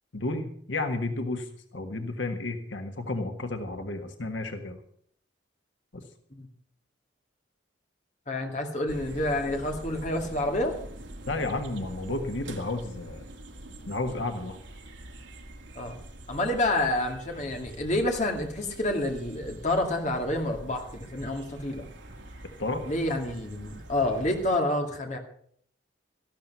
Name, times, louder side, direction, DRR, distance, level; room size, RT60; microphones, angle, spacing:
voice 1, 0.1-4.8 5.9-6.0 11.3-13.3 13.9-14.6 22.6-22.8, left 2 dB, 85° left, 6 dB, 1.5 m, -32 dB
voice 2, 8.3-10.7 15.8-16.0 16.3-21.9 22.9-25.2, left 1 dB, 40° left, 3 dB, 2.4 m, -28 dB
sound 1, 8.9-24.6, right 1 dB, 75° right, 2.1 m, -44 dB
14.0 x 12.5 x 5.5 m, 0.63 s
head